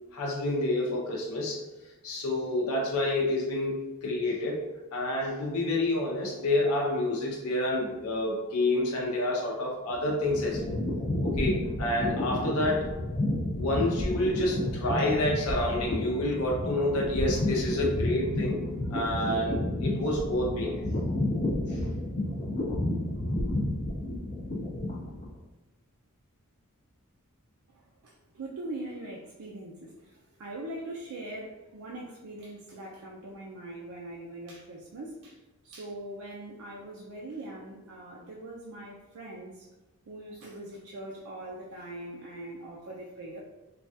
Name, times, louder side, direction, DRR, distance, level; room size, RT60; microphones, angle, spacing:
voice 1, 0.1-1.6 2.0-4.7 4.9-10.8 11.2-12.9 13.6-18.6 18.9-20.9 21.7-21.8 22.2-22.3, left 1 dB, 75° left, -2 dB, 0.6 m, -28 dB
sound 1, 9.9-25.4, left 1 dB, 30° left, 0.4 m, -31 dB
voice 2, 27.7-35.4 35.6-39.7 40.1-43.4, right 1 dB, 70° right, -3 dB, 0.4 m, -42 dB
3.3 x 2.3 x 2.6 m, 1.1 s
head